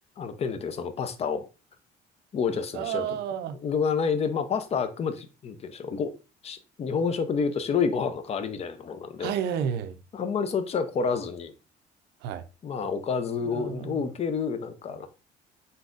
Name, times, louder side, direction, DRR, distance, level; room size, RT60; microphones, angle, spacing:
voice 1, 0.2-1.5 2.3-3.2 3.6-6.1 6.4-9.3 10.1-11.5 12.6-15.1, left 5 dB, 40° left, 0.5 m, -29 dB
voice 2, 2.7-3.6 9.2-10.0 12.2-12.4 13.4-14.1, right 9 dB, 80° right, 0.5 m, -31 dB
4.0 x 3.9 x 2.4 m
cardioid pair, 110°, 17 cm